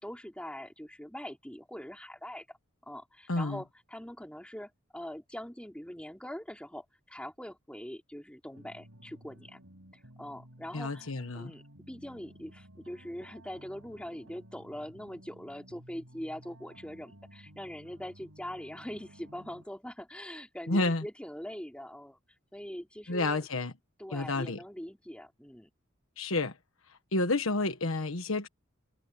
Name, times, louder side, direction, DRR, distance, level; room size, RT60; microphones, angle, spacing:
voice 1, 0.0-2.6 2.9-9.6 10.2-11.1 11.3-22.2 22.5-23.4 24.0-25.7, equal, 5° left, 4.3 m, -43 dB
voice 2, 3.3-3.6 10.7-11.5 20.7-21.0 23.1-23.7 24.1-24.6 26.2-26.5 27.1-28.5, left 2 dB, 75° left, 1.4 m, -30 dB
sound 1, 8.5-19.6, right 1 dB, 80° right, 7.0 m, -55 dB
head